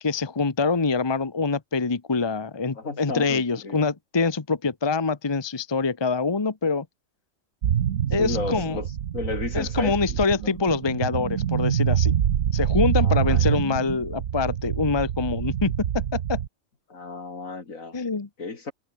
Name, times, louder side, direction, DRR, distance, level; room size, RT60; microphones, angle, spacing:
voice 1, 0.0-6.9 8.1-8.8 9.5-12.2 12.5-16.4 17.9-18.3, left 4 dB, 20° left, 0.9 m, -25 dB
voice 2, 2.7-3.8 8.2-10.0 10.4-10.5 13.0-13.6 16.9-18.0 18.4-18.7, left 4 dB, 75° left, 3.3 m, -33 dB
sound 1, 7.6-16.5, right 9 dB, 65° right, 1.3 m, -25 dB
omnidirectional pair, 1.4 m